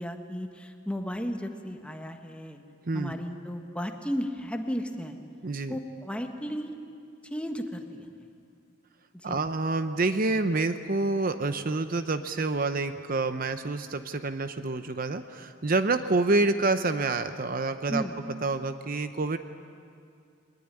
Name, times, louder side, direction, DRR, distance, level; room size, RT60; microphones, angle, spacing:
voice 1, 0.0-2.6 2.9-5.2 5.7-6.8 7.2-8.0 9.1-9.4 17.9-18.2, equal, 5° left, 4 dB, 1.5 m, -34 dB
voice 2, 2.9-3.2 5.4-5.8 9.2-18.0 18.4-19.4, right 3 dB, 45° right, 10 dB, 0.8 m, -27 dB
21.5 x 20.5 x 10.0 m, 2.3 s
head